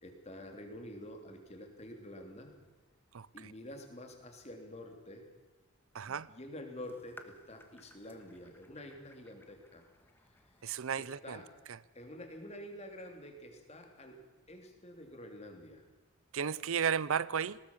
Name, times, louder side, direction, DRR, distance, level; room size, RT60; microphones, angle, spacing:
voice 1, 0.0-2.6 3.3-5.3 6.0-9.8 11.0-11.5 11.9-14.2 14.5-15.8, left 1 dB, 30° left, 3.1 m, -48 dB
voice 2, 3.1-3.5 5.9-6.3 10.6-11.4 16.3-17.6, right 7 dB, 70° right, 0.5 m, -34 dB
sound 1, 6.8-10.8, left 1 dB, 10° left, 1.5 m, -59 dB
20.0 x 18.5 x 7.3 m
head